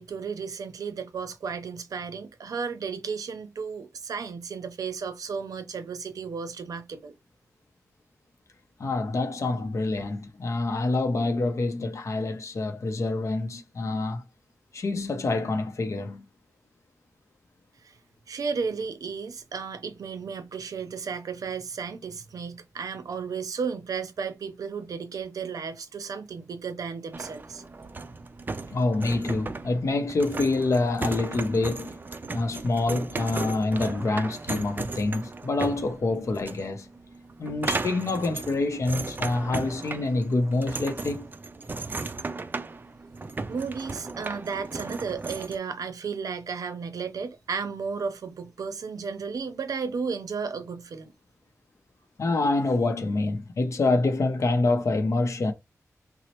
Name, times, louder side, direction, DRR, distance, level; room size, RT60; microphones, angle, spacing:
voice 1, 0.0-7.1 17.8-18.0 18.3-27.6 43.5-51.1, right 5 dB, 90° right, 0.5 m, -34 dB
voice 2, 8.8-14.2 14.7-16.2 28.7-32.0 32.3-36.9 37.4-41.3 52.2-55.5, left 2 dB, 60° left, 0.6 m, -26 dB
sound 1, 27.1-45.6, right 3 dB, 35° right, 0.3 m, -36 dB
4.0 x 2.0 x 2.9 m
wide cardioid pair, 115°, 6 cm